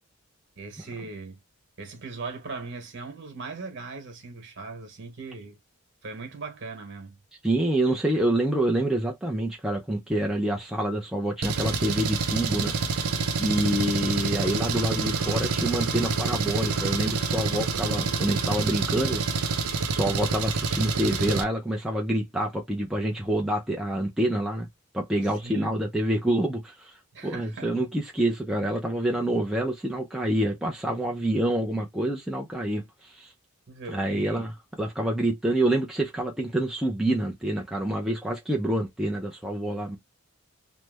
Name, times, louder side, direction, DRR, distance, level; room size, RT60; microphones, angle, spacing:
voice 1, 0.6-1.4 1.8-5.6 6.0-7.2 25.2-25.7 27.1-27.7 33.7-34.5, right 4 dB, 55° right, 1.2 m, -39 dB
voice 2, 7.4-12.7 13.4-19.2 19.9-24.7 24.9-27.0 27.2-33.3 33.9-34.5 34.8-40.0, right 1 dB, ahead, 0.4 m, -27 dB
Engine, 11.4-21.4, right 4 dB, 85° right, 0.7 m, -27 dB
3.1 x 2.1 x 3.3 m
head